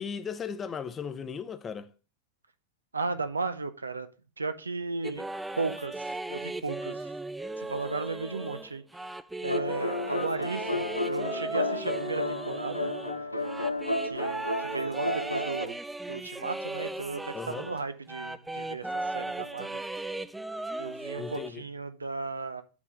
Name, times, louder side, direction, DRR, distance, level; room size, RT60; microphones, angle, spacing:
voice 1, 0.0-1.9 17.3-17.7 21.2-21.6, left 6 dB, 20° left, 0.7 m, -36 dB
voice 2, 2.9-4.1 4.4-5.3 5.6-7.1 7.6-8.8 9.4-12.9 14.0-15.8 16.1-19.8 20.8-22.6, right 3 dB, 75° right, 0.7 m, -35 dB
sound 1, 5.0-17.8 18.1-21.5, right 2 dB, 5° right, 0.4 m, -37 dB
sound 2, 9.4-15.7, left 1 dB, 85° left, 0.6 m, -32 dB
8.2 x 3.5 x 6.2 m
figure-of-eight pair, 90°, 0 cm